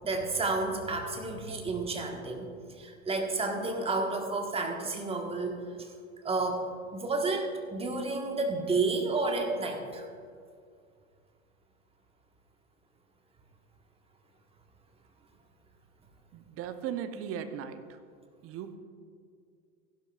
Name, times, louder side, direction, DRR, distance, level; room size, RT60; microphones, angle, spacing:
voice 1, 0.0-2.5 2.8-5.9 6.2-10.1, right 3 dB, 15° right, 3 dB, 1.4 m, -31 dB
voice 2, 16.3-18.0 18.4-18.8, right 8 dB, 35° right, 9 dB, 0.8 m, -37 dB
15.5 x 11.5 x 2.4 m, 2.2 s
hypercardioid pair, 95°, 42 cm